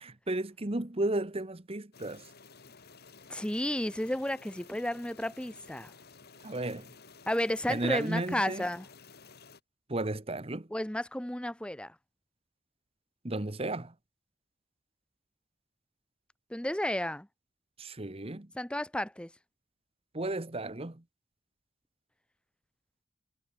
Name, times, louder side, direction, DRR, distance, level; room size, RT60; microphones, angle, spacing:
voice 1, 0.0-2.3 6.4-6.9 7.7-8.7 9.9-10.7 13.2-13.9 17.8-18.5 20.1-21.0, right 2 dB, 30° right, 1.1 m, -34 dB
sound 1, 1.9-9.6, left 5 dB, 50° left, 2.3 m, -54 dB
voice 2, 3.3-5.9 7.3-8.8 10.7-11.9 16.5-17.3 18.5-19.3, left 1 dB, 5° left, 0.7 m, -32 dB
head